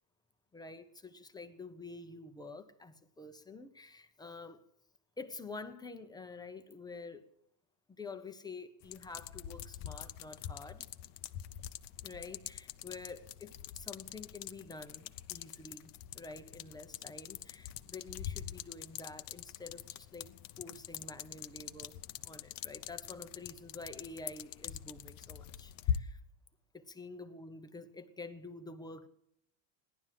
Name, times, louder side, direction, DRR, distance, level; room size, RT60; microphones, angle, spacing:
voice 1, 0.5-4.6 5.2-7.3 7.9-10.9 12.0-20.3 20.6-22.0 22.2-26.2 26.7-29.1, left 3 dB, 10° left, 0.8 m, -48 dB
sound 1, 8.8-26.0, left 10 dB, 45° left, 0.7 m, -43 dB
16.5 x 11.5 x 7.6 m
cardioid pair, 160°, 49 cm